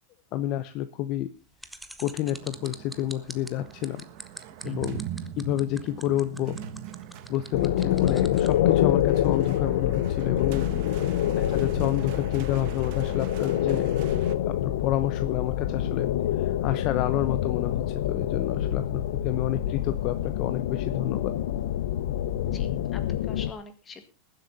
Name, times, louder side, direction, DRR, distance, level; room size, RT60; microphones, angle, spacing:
voice 1, 0.3-1.3 2.0-4.0 4.6-5.0 5.4-6.6 7.3-10.7 10.9-11.0 11.4-13.9 14.3-21.3, left 13 dB, 40° left, 11 dB, 0.8 m, -29 dB
sound 1, 1.6-8.5, right 1 dB, ahead, 0.9 m, -43 dB
sound 2, 2.0-14.3, right 10 dB, 50° right, 1.2 m, -42 dB
sound 3, 7.5-23.5, left 11 dB, 75° left, 0.8 m, -26 dB
voice 2, 10.7-11.1 22.5-24.0, left 5 dB, 20° left, 8 dB, 1.9 m, -44 dB
21.0 x 7.9 x 4.1 m, 0.33 s
supercardioid pair, 160°, 0 cm